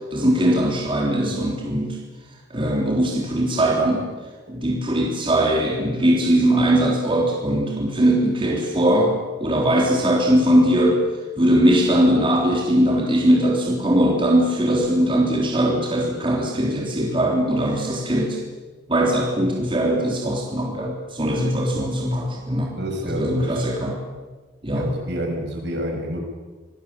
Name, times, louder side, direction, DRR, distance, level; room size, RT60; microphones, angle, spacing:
voice 1, 0.1-2.0 2.5-4.1 4.5-11.0 11.4-18.4 18.9-22.7 23.0-24.0 24.6-24.9, right 1 dB, 30° right, -1 dB, 3.5 m, -20 dB
voice 2, 22.6-23.7 24.7-26.2, right 1 dB, 65° right, 2 dB, 6.9 m, -29 dB
26.0 x 19.5 x 8.8 m, 1.3 s
head